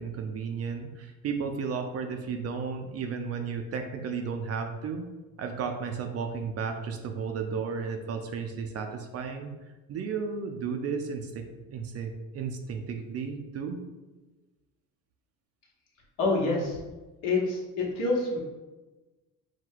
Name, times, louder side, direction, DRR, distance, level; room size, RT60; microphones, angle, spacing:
voice 1, 0.0-5.1 5.4-9.5 9.9-11.4 11.7-13.8, right 5 dB, 50° right, 5 dB, 0.5 m, -33 dB
voice 2, 16.2-16.8 17.2-18.4, left 3 dB, 75° left, -3 dB, 1.1 m, -27 dB
3.9 x 2.2 x 4.5 m, 1.2 s
cardioid pair, 125°, 33 cm